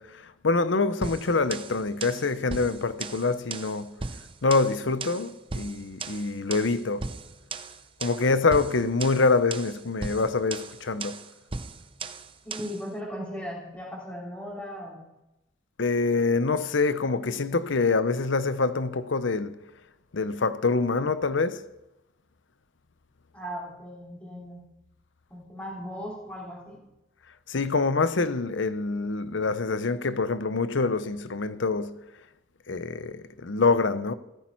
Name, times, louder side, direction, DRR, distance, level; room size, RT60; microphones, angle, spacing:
voice 1, 0.0-4.0 4.4-7.1 8.0-11.2 15.8-19.6 20.1-21.6 27.5-32.0 32.7-34.1, left 3 dB, 80° left, 0.8 m, -25 dB
sound 1, 1.0-12.8, right 4 dB, 30° right, 0.6 m, -38 dB
voice 2, 12.4-15.0 23.3-24.6 25.3-26.8, equal, 10° left, 3.2 m, -37 dB
15.5 x 13.5 x 4.6 m
head